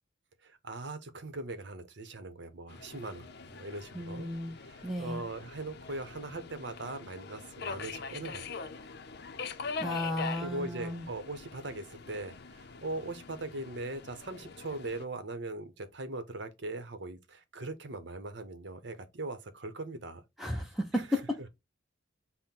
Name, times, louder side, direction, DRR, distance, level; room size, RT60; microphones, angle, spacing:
voice 1, 0.4-4.3 4.6-8.6 10.4-21.2, right 2 dB, 65° right, 0.9 m, -40 dB
Subway metro underground, 2.7-15.1, left 5 dB, 60° left, 0.5 m, -43 dB
voice 2, 3.9-4.5 4.8-5.2 9.8-11.1 20.4-21.4, left 1 dB, ahead, 0.6 m, -33 dB
5.6 x 2.1 x 4.2 m
head